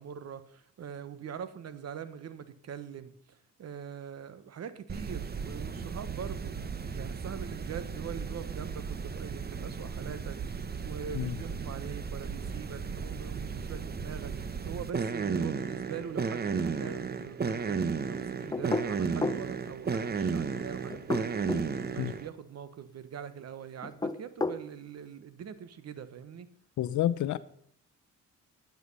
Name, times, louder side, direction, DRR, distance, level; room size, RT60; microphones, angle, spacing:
voice 1, 0.0-26.5, right 7 dB, 55° right, 1.2 m, -43 dB
sound 1, 4.9-22.3, right 5 dB, 30° right, 1.1 m, -34 dB
sound 2, 18.5-19.5 20.9-21.7 23.8-24.6, left 3 dB, 15° left, 0.6 m, -32 dB
voice 2, 26.8-27.4, left 12 dB, 70° left, 0.7 m, -29 dB
11.5 x 9.2 x 5.5 m
cardioid pair, 90°, 30 cm